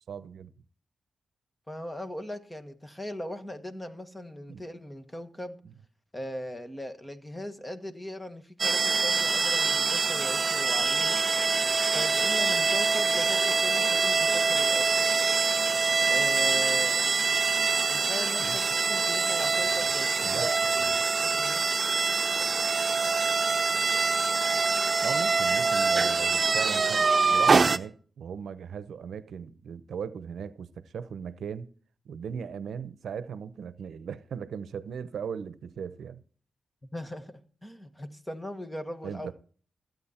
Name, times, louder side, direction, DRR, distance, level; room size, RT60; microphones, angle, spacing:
voice 1, 0.1-0.5 4.5-4.6 18.4-18.6 20.2-20.9 25.0-31.7 32.1-36.2 39.0-39.3, right 7 dB, 85° right, 0.8 m, -38 dB
voice 2, 1.7-5.6 6.1-11.3 11.9-14.9 16.0-17.1 17.9-18.6 18.9-21.6 36.9-39.3, left 1 dB, 15° left, 1.7 m, -39 dB
sound 1, 8.6-27.8, right 4 dB, 45° right, 0.9 m, -25 dB
15.5 x 9.3 x 4.3 m
cardioid pair, 90°, 0 cm